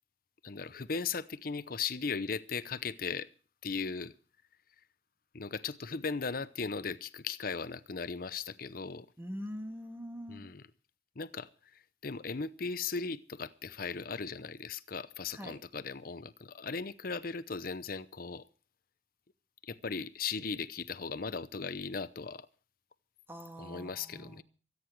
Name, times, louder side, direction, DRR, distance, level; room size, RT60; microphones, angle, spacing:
voice 1, 0.4-3.3 3.6-4.1 5.3-9.1 10.3-10.6 11.2-18.5 19.6-22.5 23.6-24.4, left 5 dB, 55° left, 0.8 m, -37 dB
voice 2, 9.2-10.5 15.3-15.6 23.3-24.4, equal, 15° right, 1.7 m, -43 dB
24.5 x 9.8 x 4.6 m
head